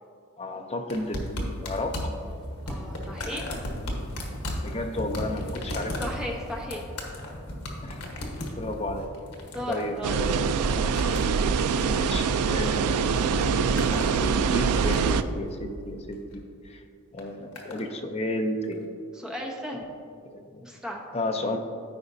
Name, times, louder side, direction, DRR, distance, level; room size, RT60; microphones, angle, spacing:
voice 1, 0.4-2.0 4.6-5.9 7.8-8.0 8.6-9.1 9.7-10.6 11.8-13.7 14.0-16.8 17.1-18.8 20.3-20.7 21.1-21.6, left 1 dB, 30° left, 4 dB, 0.6 m, -33 dB
sound 1, 0.9-12.8 13.1-14.1 14.5-15.2 16.1-16.4 17.2-17.8 18.7-18.8, left 1 dB, 80° left, 1.3 m, -36 dB
voice 2, 2.7-3.6 6.0-6.9 9.5-10.1 19.1-19.9 20.6-21.0, equal, 5° right, -2 dB, 0.8 m, -35 dB
sound 2, 10.0-15.2, right 5 dB, 85° right, 0.4 m, -24 dB
13.5 x 5.0 x 2.7 m, 2.4 s
head